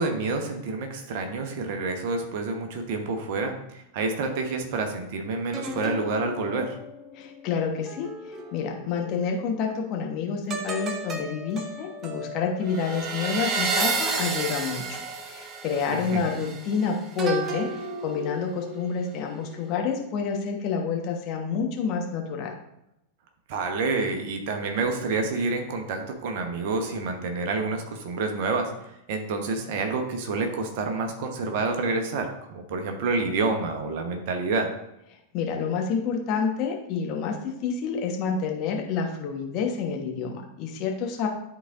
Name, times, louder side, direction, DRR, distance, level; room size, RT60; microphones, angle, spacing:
voice 1, 0.0-6.8 15.9-16.2 23.5-28.7 29.1-34.7, right 3 dB, 50° right, 5 dB, 1.0 m, -28 dB
sound 1, 5.5-9.2 10.5-19.0 19.4-19.7, right 3 dB, 25° right, 0.8 m, -33 dB
voice 2, 7.1-8.1 8.5-15.0 15.3-22.5 35.3-41.3, left 5 dB, 40° left, 1 dB, 1.1 m, -28 dB
11.0 x 3.9 x 2.5 m, 0.85 s
figure-of-eight pair, 90°, 0 cm